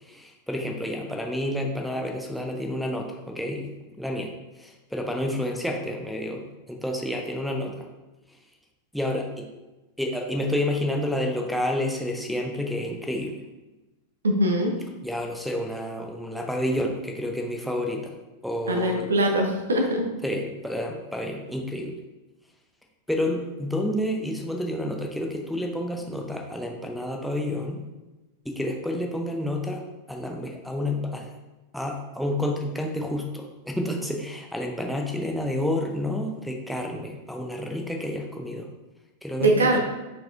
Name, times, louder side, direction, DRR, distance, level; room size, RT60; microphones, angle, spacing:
voice 1, 0.1-3.7 4.0-4.3 4.6-7.9 8.9-9.5 10.0-13.4 15.0-18.1 18.4-19.1 20.2-21.9 23.1-27.8 28.5-29.8 30.1-31.3 31.7-38.7 39.2-39.8, left 1 dB, ahead, 0 dB, 0.5 m, -29 dB
voice 2, 14.2-14.7 18.7-20.1 39.4-39.8, right 1 dB, 70° right, 3 dB, 0.6 m, -22 dB
4.2 x 4.2 x 2.4 m, 1.1 s
figure-of-eight pair, 90°, 0 cm